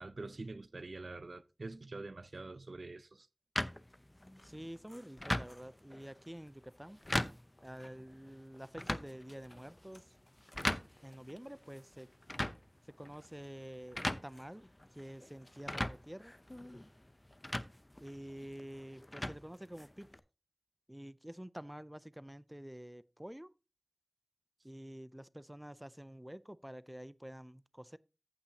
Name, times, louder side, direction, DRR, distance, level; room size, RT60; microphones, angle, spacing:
voice 1, 0.0-3.3, right 3 dB, 85° right, 0.5 m, -45 dB
sound 1, 3.6-20.2, left 1 dB, 30° left, 0.7 m, -41 dB
voice 2, 4.4-7.0 7.6-10.1 11.0-12.1 12.8-14.7 14.9-16.3 18.0-20.1 20.9-23.5 24.6-28.0, equal, 10° right, 0.4 m, -48 dB
14.5 x 5.7 x 2.8 m
wide cardioid pair, 40°, 0 cm